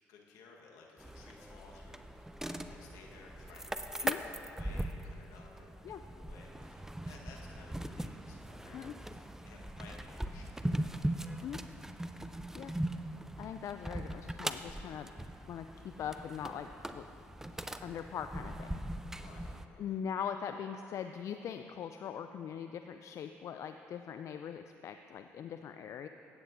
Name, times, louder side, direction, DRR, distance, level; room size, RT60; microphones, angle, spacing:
voice 1, 0.1-8.8 9.1-11.3 19.1-20.0, left 4 dB, 75° left, -1 dB, 1.3 m, -57 dB
sound 1, 1.0-19.7, right 1 dB, 5° right, 0.5 m, -40 dB
voice 2, 13.4-15.1 15.5-17.0 17.8-18.8 19.8-26.1, left 8 dB, 55° left, 8 dB, 0.3 m, -41 dB
14.0 x 8.9 x 2.6 m, 2.7 s
hypercardioid pair, 55°, 6 cm